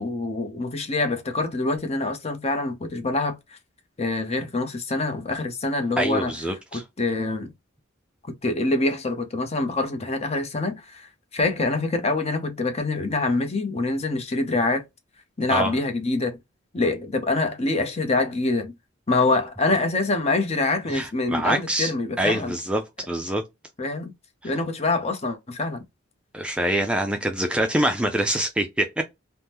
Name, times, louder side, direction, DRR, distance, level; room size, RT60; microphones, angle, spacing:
voice 1, 0.0-3.3 4.0-6.3 6.7-7.5 8.4-14.8 15.4-16.4 16.7-18.7 19.1-22.6 23.8-24.1 24.4-25.8, left 2 dB, 30° left, 0.7 m, -25 dB
voice 2, 6.0-6.8 15.5-15.7 20.9-21.9 22.2-23.4 24.4-24.5 26.3-29.0, right 1 dB, 5° right, 0.3 m, -25 dB
3.5 x 2.1 x 2.8 m
head